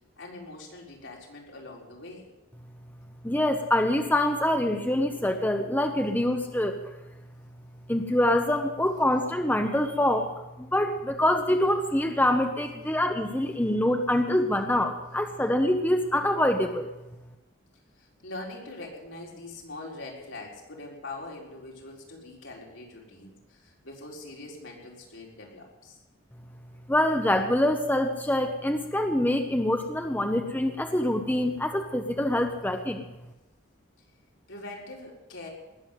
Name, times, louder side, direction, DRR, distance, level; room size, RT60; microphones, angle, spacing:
voice 1, 0.2-2.2 18.0-26.0 34.5-35.5, left 2 dB, 75° left, -2 dB, 4.3 m, -43 dB
voice 2, 3.2-6.8 7.9-10.3 10.6-16.9 26.9-33.0, left 1 dB, 10° left, 5 dB, 0.8 m, -25 dB
19.5 x 7.3 x 9.2 m, 1.0 s
head